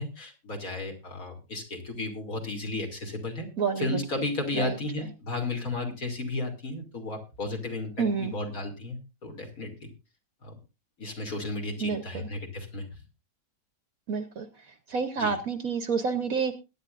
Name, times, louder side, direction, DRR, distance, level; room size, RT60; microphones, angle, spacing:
voice 1, 0.0-3.5 3.8-9.9 10.4-10.5 11.0-12.8 15.2-15.3, left 2 dB, 50° left, 2 dB, 3.0 m, -34 dB
voice 2, 3.6-4.0 4.5-4.7 8.0-8.3 11.8-12.3 14.1-14.5 14.9-16.5, right 5 dB, 55° right, 10 dB, 1.2 m, -28 dB
21.0 x 9.8 x 2.5 m, 0.28 s
omnidirectional pair, 2.0 m